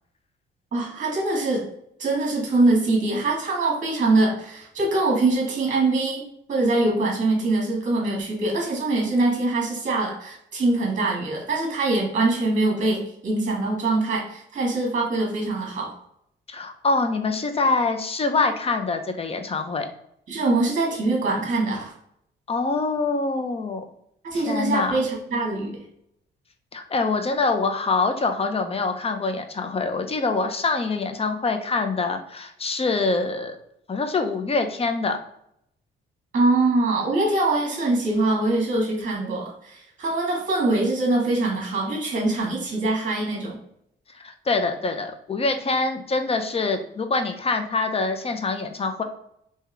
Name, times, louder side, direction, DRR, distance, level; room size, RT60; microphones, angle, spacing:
voice 1, 0.7-1.6 2.0-6.2 6.5-15.9 20.3-21.9 24.2-25.8 36.3-43.6, right 2 dB, 40° right, -1 dB, 1.4 m, -23 dB
voice 2, 16.5-19.9 22.5-23.8 24.3-25.0 26.7-33.6 33.9-35.2 44.1-49.0, left 3 dB, 30° left, 6 dB, 0.6 m, -25 dB
3.5 x 2.8 x 3.2 m, 0.75 s
cardioid pair, 90°, 20 cm